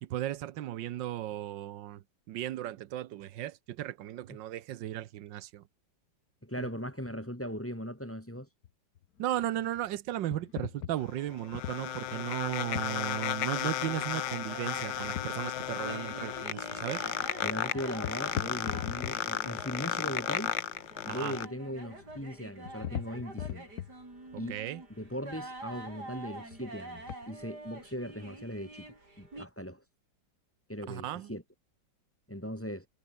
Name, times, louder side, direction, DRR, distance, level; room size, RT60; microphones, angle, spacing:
voice 1, 0.0-5.6 6.6-6.7 9.2-17.0 21.1-21.3 24.3-24.8 30.9-31.3, right 13 dB, 90° right, 1.5 m, -36 dB
voice 2, 6.4-8.5 17.4-20.5 21.0-23.7 24.4-24.6 25.0-29.8 30.7-31.4 32.3-32.9, equal, 5° left, 2.3 m, -39 dB
sound 1, 8.6-8.7 9.0-9.9 10.3-12.1 12.8-13.1 14.9-15.6 15.9-16.4 16.8-17.0 17.2-17.4 17.8-19.3 19.6-20.2 21.7-22.2 22.5-24.5 25.0-26.2 26.5-26.7 27.0-27.2, left 11 dB, 60° left, 1.3 m, -41 dB
sound 2, 11.0-21.5, left 12 dB, 90° left, 1.6 m, -34 dB
sound 3, 13.4-29.5, right 2 dB, 65° right, 8.4 m, -47 dB
omnidirectional pair, 1.9 m